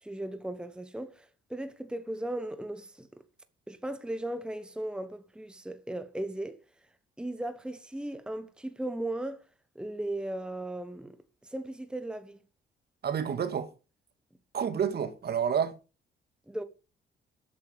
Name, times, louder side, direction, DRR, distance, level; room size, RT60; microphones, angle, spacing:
voice 1, 0.0-3.1 3.7-6.6 7.2-9.4 9.7-11.2 11.4-12.4 16.5-16.6, right 1 dB, 5° right, 1.1 m, -37 dB
voice 2, 13.0-13.7 14.5-15.7, right 7 dB, 55° right, 1.9 m, -29 dB
12.5 x 8.8 x 5.2 m
cardioid pair, 90°, 20 cm